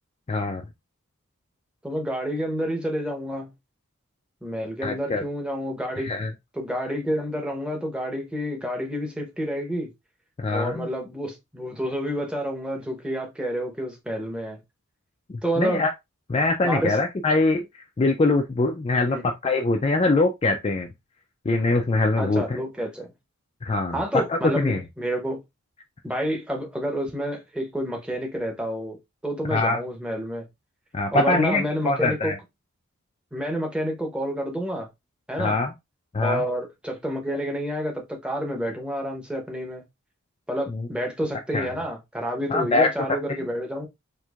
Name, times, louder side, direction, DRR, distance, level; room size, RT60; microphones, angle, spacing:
voice 1, 0.3-0.6 4.8-5.2 6.0-6.3 10.4-10.9 15.3-15.9 16.3-17.6 18.0-19.2 19.4-20.9 21.5-22.6 23.6-24.0 24.3-24.8 29.5-29.8 30.9-32.4 35.4-35.7 36.1-36.4 40.7-40.9 41.5-41.7 42.5-42.9, left 2 dB, 25° left, 0.3 m, -23 dB
voice 2, 1.8-3.5 4.4-6.2 6.5-9.9 10.5-14.6 15.4-15.8 16.6-17.0 19.1-19.2 22.2-23.1 23.9-25.4 26.0-29.0 29.2-30.5 31.1-32.3 33.3-34.9 35.3-35.6 36.2-39.8 40.5-43.9, equal, 5° right, 0.8 m, -29 dB
4.4 x 2.6 x 2.4 m
head